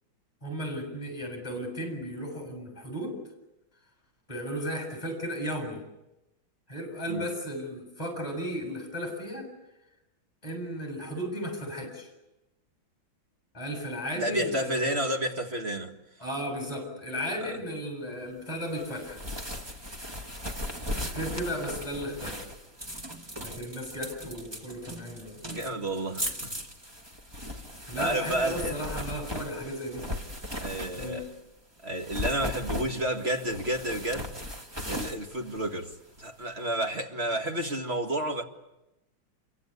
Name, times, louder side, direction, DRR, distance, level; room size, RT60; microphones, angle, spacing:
voice 1, 0.4-3.2 4.3-5.8 6.7-9.5 10.4-12.1 13.5-15.0 16.2-19.2 20.9-22.4 23.4-25.4 27.9-30.0 31.0-31.2, equal, 20° left, 7.7 m, -35 dB
voice 2, 14.2-15.9 17.4-17.6 19.5-19.6 25.4-26.5 27.5-27.6 28.0-28.8 30.6-31.2 31.8-34.3 34.9-38.4, right 1 dB, 30° right, 2.1 m, -31 dB
sound 1, 18.7-31.4 31.9-36.2, equal, 15° right, 1.7 m, -38 dB
27.5 x 24.0 x 8.3 m
omnidirectional pair, 2.2 m